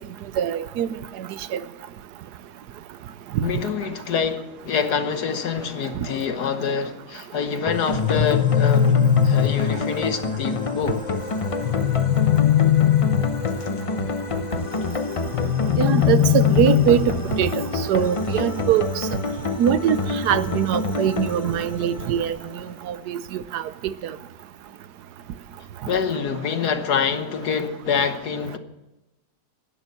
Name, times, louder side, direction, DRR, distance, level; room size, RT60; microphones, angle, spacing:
voice 1, 0.4-1.6 3.3-3.5 15.8-19.1 19.6-22.4 22.9-24.1, right 10 dB, 75° right, 15 dB, 1.2 m, -23 dB
voice 2, 3.4-8.9 9.2-11.0 13.6-13.7 25.9-28.6, left 6 dB, 70° left, 8 dB, 1.7 m, -26 dB
sound 1, 7.7-22.7, left 3 dB, 45° left, 0.4 m, -28 dB
sound 2, 7.9-9.9 11.6-13.6 15.3-17.3, left 10 dB, 85° left, 1.3 m, -20 dB
11.5 x 10.5 x 7.3 m, 0.99 s
omnidirectional pair, 1.8 m